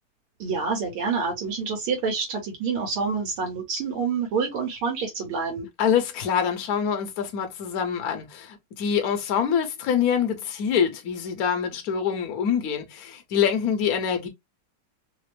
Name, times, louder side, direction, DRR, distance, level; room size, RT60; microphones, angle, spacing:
voice 1, 0.4-5.7, right 5 dB, 80° right, 1.9 m, -27 dB
voice 2, 5.8-14.3, left 8 dB, 55° left, 1.1 m, -25 dB
4.0 x 2.0 x 3.1 m
omnidirectional pair, 2.4 m